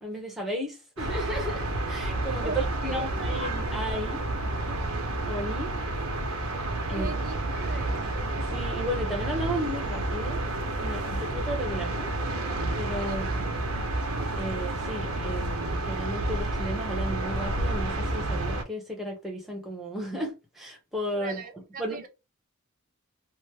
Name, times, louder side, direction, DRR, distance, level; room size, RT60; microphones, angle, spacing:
voice 1, 0.0-4.2 5.2-5.7 6.9-7.1 8.4-10.4 10.8-12.1 12.7-13.5 14.3-21.4 21.8-22.1, equal, ahead, 0.9 m, -34 dB
sound 1, 1.0-18.6, right 2 dB, 75° right, 0.8 m, -30 dB
voice 2, 2.8-3.4 6.9-8.1 13.0-13.5 21.1-22.1, right 3 dB, 40° right, 0.6 m, -39 dB
3.0 x 2.1 x 3.3 m
head